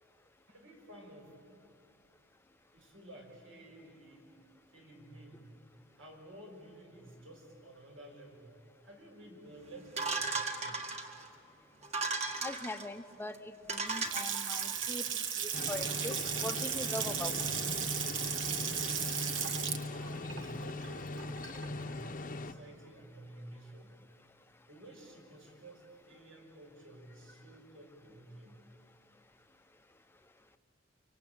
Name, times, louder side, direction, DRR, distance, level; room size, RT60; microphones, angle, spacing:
voice 1, 0.5-1.3 2.7-4.4 4.7-5.5 6.0-10.9 19.5-24.0 24.7-28.6, right 1 dB, 80° right, 2 dB, 5.9 m, -53 dB
sound 1, 10.0-11.3 11.8-12.9 13.3-13.4 13.7-14.9, right 3 dB, 35° right, 1.7 m, -36 dB
voice 2, 12.4-13.3 13.7-17.3, left 1 dB, 10° left, 8 dB, 0.8 m, -41 dB
Water tap faucet / Sink (filling or washing) / Splash splatter, 13.7-21.8, right 8 dB, 65° right, 1.3 m, -36 dB
sound 2, 15.5-22.5, left 2 dB, 40° left, 0.9 m, -40 dB
25.0 x 24.5 x 8.9 m, 2.5 s
head